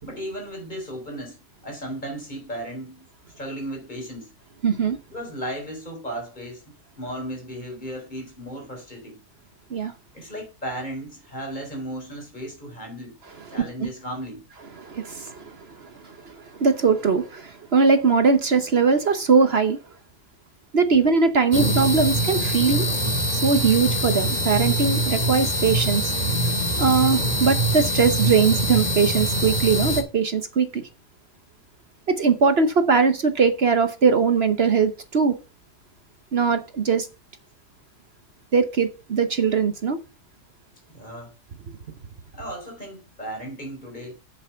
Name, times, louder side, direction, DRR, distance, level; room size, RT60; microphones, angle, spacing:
voice 1, 0.0-3.1 3.4-4.3 5.1-9.2 10.1-13.2 13.5-14.4 40.9-41.3 42.3-44.1, right 1 dB, 30° left, 4.1 m, -35 dB
voice 2, 4.6-5.0 9.7-9.9 13.5-13.9 14.8-19.8 20.7-22.9 23.3-26.1 26.8-30.8 32.1-35.4 36.3-37.1 38.5-40.0, right 5 dB, 45° right, 1.0 m, -21 dB
sound 1, 21.5-30.0, right 1 dB, 25° right, 2.5 m, -23 dB
8.2 x 7.3 x 5.5 m
omnidirectional pair, 1.7 m